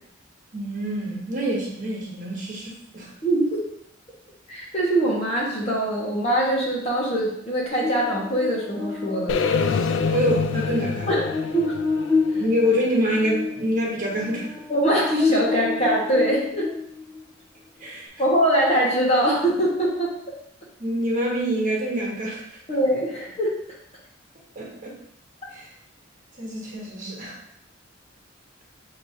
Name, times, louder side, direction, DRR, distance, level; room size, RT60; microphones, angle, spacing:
voice 1, 0.5-3.1 10.1-11.1 12.3-14.5 17.8-18.1 20.8-22.6 24.5-24.9 25.5-25.7 26.4-27.4, equal, 40° right, -3 dB, 1.2 m, -26 dB
voice 2, 3.2-3.6 4.5-9.3 11.1-11.3 11.5-11.7 14.7-16.7 18.2-20.1 22.7-23.6, right 1 dB, 35° left, -4 dB, 1.2 m, -22 dB
Buzz, 7.8-17.2, left 4 dB, 15° left, 0.9 m, -29 dB
sound 1, 9.3-13.3, left 5 dB, 65° left, 0.4 m, -26 dB
6.4 x 3.0 x 2.7 m, 0.71 s
head